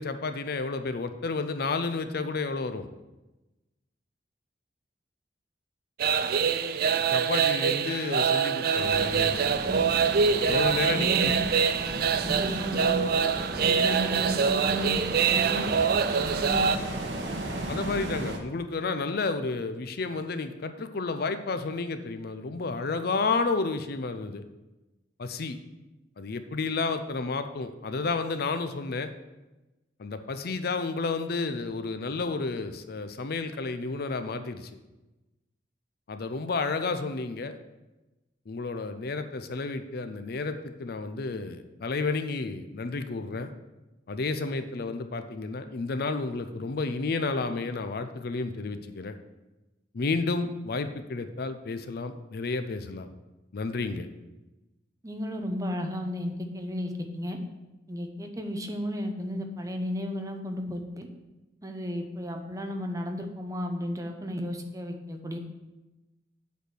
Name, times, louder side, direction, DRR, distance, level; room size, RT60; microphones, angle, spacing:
voice 1, 0.0-2.9 7.1-9.4 10.5-11.4 17.7-24.4 25.2-25.6 26.2-29.1 30.0-34.7 36.1-37.6 38.5-43.5 44.1-49.2 49.9-53.1 53.5-54.1, left 3 dB, 60° left, 9 dB, 0.5 m, -31 dB
sound 1, 6.0-16.8, right 6 dB, 60° right, 0.4 m, -25 dB
sound 2, 8.7-18.4, right 1 dB, 75° right, 1.2 m, -35 dB
voice 2, 10.9-11.4 12.2-13.0 13.6-15.6 16.2-16.7 55.0-57.4 57.9-61.1 61.6-65.4, equal, 20° right, 4 dB, 0.8 m, -33 dB
8.2 x 4.3 x 6.3 m, 1.1 s
head